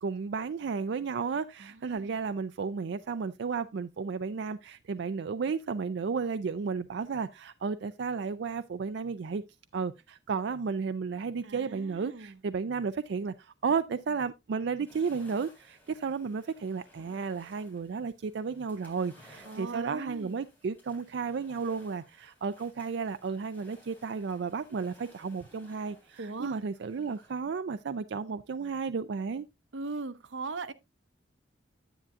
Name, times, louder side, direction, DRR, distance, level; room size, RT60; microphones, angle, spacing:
voice 1, 0.0-9.4 9.7-29.5, right 5 dB, 65° right, 0.4 m, -33 dB
voice 2, 1.6-2.2 11.4-12.4 19.4-20.4 26.2-26.6 29.7-30.7, right 3 dB, 90° right, 0.8 m, -39 dB
sound 1, 14.9-27.4, left 1 dB, 10° left, 3.6 m, -59 dB
10.0 x 8.8 x 2.4 m
head